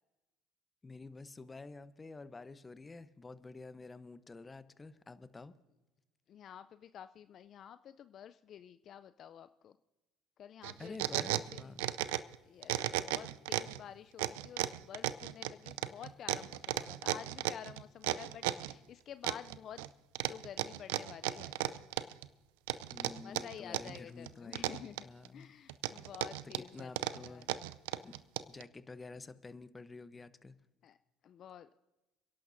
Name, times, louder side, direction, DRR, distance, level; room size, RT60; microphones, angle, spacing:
voice 1, 0.8-5.5 10.8-11.8 22.9-25.5 26.4-27.5 28.0-28.2 28.5-30.5, left 3 dB, 25° left, 13 dB, 0.9 m, -49 dB
voice 2, 6.3-9.8 10.4-11.0 11.5-11.7 12.1-19.9 20.2-21.5 23.2-25.1 25.3-27.6 30.8-31.0 31.2-31.7, left 9 dB, 55° left, 12 dB, 0.4 m, -50 dB
sound 1, 10.6-12.4 12.6-13.8 14.2-18.7 19.2-19.9 20.2-22.3 22.7-24.0 24.3-25.3 25.7-28.6, right 16 dB, 85° right, 0.5 m, -35 dB
30.0 x 11.5 x 2.7 m, 1.0 s
hypercardioid pair, 75°, 0 cm